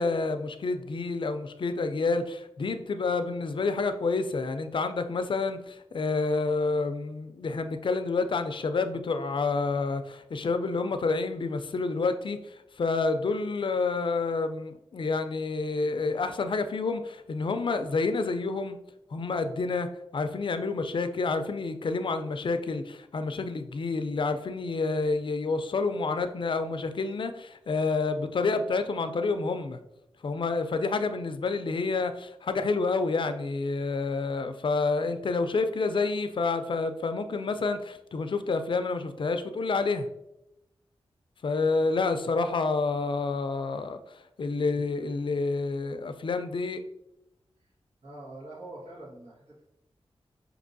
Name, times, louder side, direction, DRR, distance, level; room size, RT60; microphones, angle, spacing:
voice 1, 0.0-12.4 12.8-18.8 19.1-19.9 20.1-29.8 30.2-40.1 41.4-44.0 44.4-46.8, left 3 dB, 55° left, 9 dB, 0.4 m, -28 dB
voice 2, 48.0-49.6, right 2 dB, 85° right, -7 dB, 1.4 m, -44 dB
5.3 x 2.8 x 2.6 m, 0.87 s
wide cardioid pair, 75°, 10 cm